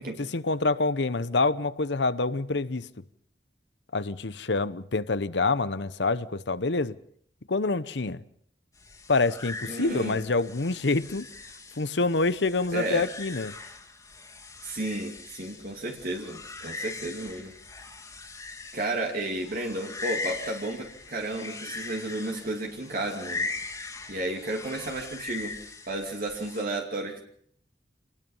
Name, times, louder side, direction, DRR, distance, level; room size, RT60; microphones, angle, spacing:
voice 1, 0.2-2.9 3.9-7.0 7.5-8.2 9.1-11.2 11.8-13.5, left 3 dB, 75° left, 0.9 m, -26 dB
sound 1, 8.8-26.6, left 3 dB, 20° left, 2.5 m, -40 dB
voice 2, 9.7-10.2 12.7-13.1 14.6-17.5 18.7-23.5 24.1-27.2, right 2 dB, 55° right, 2.6 m, -33 dB
26.5 x 19.5 x 5.6 m
head